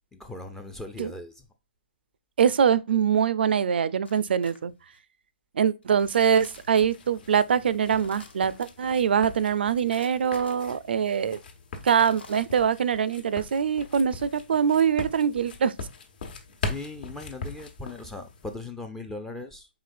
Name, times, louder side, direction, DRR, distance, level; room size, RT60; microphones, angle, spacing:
voice 1, 0.1-1.5 16.6-19.7, left 2 dB, 5° left, 0.4 m, -39 dB
voice 2, 2.4-4.7 5.6-11.4 11.8-15.7, right 7 dB, 70° right, 0.4 m, -23 dB
sound 1, 4.0-5.0 5.8-7.0 7.8-8.7 9.9-10.6 11.8-12.8, left 3 dB, 90° left, 1.3 m, -50 dB
sound 2, 6.0-18.5, left 3 dB, 55° left, 1.0 m, -41 dB
4.9 x 3.7 x 2.5 m
hypercardioid pair, 150°, 6 cm